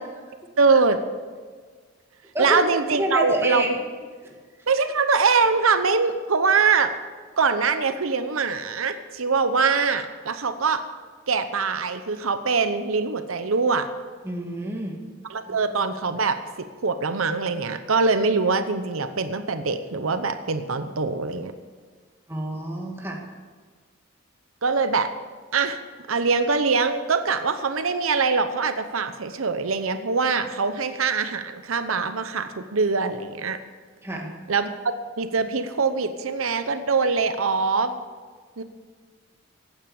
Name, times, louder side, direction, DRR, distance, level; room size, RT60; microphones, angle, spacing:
voice 1, 0.6-1.0 2.4-3.6 4.7-6.9 7.4-10.8 11.3-13.9 15.3-16.4 16.8-21.5 24.6-25.1 25.5-25.8 26.1-33.6 34.5-34.8 35.2-37.9 38.6-38.7, right 4 dB, 85° right, 10 dB, 0.9 m, -23 dB
voice 2, 2.9-3.7 4.2-4.4 14.2-15.0 15.5-15.6 22.3-23.2 34.0-34.3, right 1 dB, 10° right, 0 dB, 2.0 m, -28 dB
15.5 x 9.2 x 7.1 m, 1.5 s
head